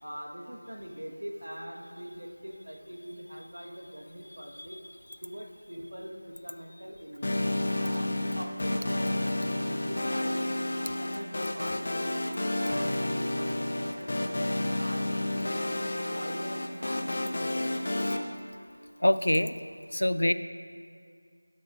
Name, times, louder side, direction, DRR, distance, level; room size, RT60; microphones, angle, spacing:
voice 1, 0.0-4.8 5.2-7.4 7.8-10.4 11.0-12.3 12.6-15.6 16.1-17.9, equal, 70° right, 1 dB, 1.3 m, -43 dB
sound 1, 7.2-18.2, left 1 dB, 40° left, 0.8 m, -30 dB
voice 2, 19.0-19.5 19.9-20.3, left 1 dB, 70° left, 12 dB, 0.5 m, -24 dB
18.0 x 7.4 x 2.5 m, 2.3 s
figure-of-eight pair, 170°, 0 cm